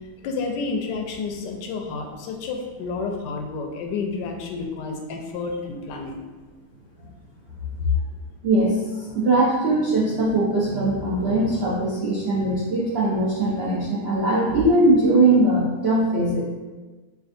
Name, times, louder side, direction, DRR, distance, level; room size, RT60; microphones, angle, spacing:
voice 1, 0.2-6.2 7.8-7.9, left 4 dB, 90° left, 2 dB, 1.2 m, -29 dB
voice 2, 8.4-16.4, right 2 dB, 70° right, -7 dB, 0.6 m, -20 dB
5.8 x 2.3 x 2.6 m, 1.3 s
omnidirectional pair, 1.8 m